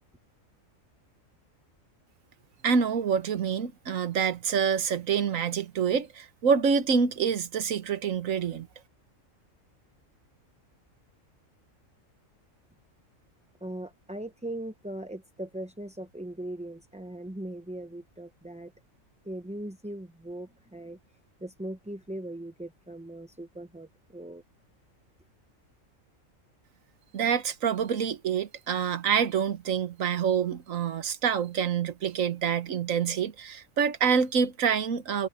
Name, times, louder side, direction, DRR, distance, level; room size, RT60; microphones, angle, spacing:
voice 1, 2.6-8.7 27.1-35.3, right 6 dB, 80° right, 1.5 m, -27 dB
voice 2, 13.6-18.7 19.2-21.0 21.4-24.4, right 1 dB, 10° right, 0.5 m, -39 dB
omnidirectional pair, 1.4 m